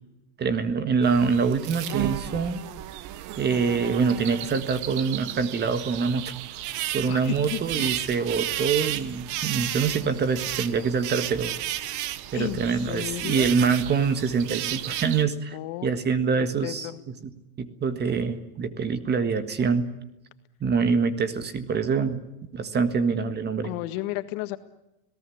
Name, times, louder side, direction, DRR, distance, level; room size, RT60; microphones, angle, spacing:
voice 1, 0.4-2.6 3.4-6.3 6.9-11.5 12.3-16.9 17.2-17.3 17.6-19.9 20.6-22.2 22.5-23.7, right 5 dB, 25° right, 10 dB, 1.7 m, -25 dB
sound 1, 1.0-15.2, right 13 dB, 45° right, 1.3 m, -33 dB
voice 2, 7.1-7.9 12.3-13.5 15.5-15.9 16.4-17.0 23.6-24.6, left 15 dB, 55° left, 10 dB, 1.8 m, -33 dB
27.0 x 18.5 x 8.6 m, 0.92 s
supercardioid pair, 140°, 43 cm